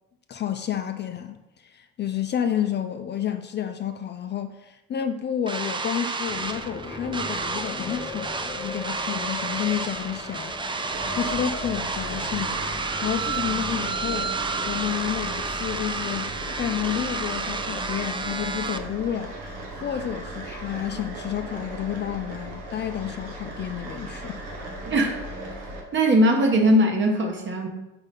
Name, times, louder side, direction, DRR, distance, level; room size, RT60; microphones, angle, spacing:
voice 1, 0.3-1.4 1.6-10.5 10.8-14.3 14.7-16.3 16.6-24.4, left 9 dB, 35° left, 0.5 m, -30 dB
sound 1, 5.5-18.8, right 4 dB, 15° right, 0.5 m, -31 dB
sound 2, 6.3-17.3, left 2 dB, 20° left, 0.9 m, -40 dB
sound 3, 10.9-25.8, right 1 dB, 75° right, 1.4 m, -37 dB
voice 2, 24.8-25.2 25.9-27.7, equal, 40° right, 1.4 m, -20 dB
5.0 x 4.1 x 5.3 m
supercardioid pair, 75°, 30 cm